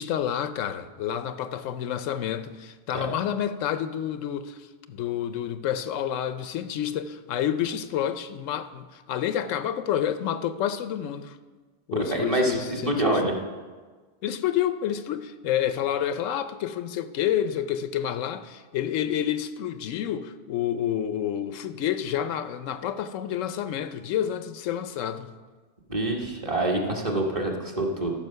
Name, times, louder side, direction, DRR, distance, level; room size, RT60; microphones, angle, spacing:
voice 1, 0.0-11.4 11.9-13.2 14.2-25.3, left 10 dB, 90° left, 1.0 m, -29 dB
voice 2, 11.9-13.3 25.9-28.1, right 1 dB, 30° right, 1.3 m, -26 dB
14.0 x 5.8 x 5.5 m
omnidirectional pair, 1.3 m